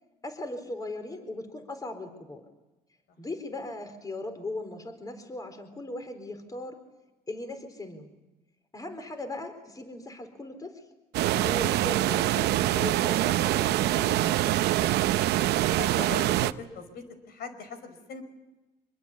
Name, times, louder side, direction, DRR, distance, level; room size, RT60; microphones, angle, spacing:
voice 1, 0.2-2.4 3.2-6.8 7.3-8.1 8.7-10.8 11.3-14.5, left 2 dB, 20° left, 7 dB, 4.2 m, -38 dB
sound 1, 11.1-16.5, right 15 dB, 80° right, 0.8 m, -25 dB
voice 2, 15.7-18.2, left 5 dB, 70° left, 9 dB, 5.2 m, -40 dB
25.5 x 21.5 x 8.5 m, 1.1 s
cardioid pair, 110°, 17 cm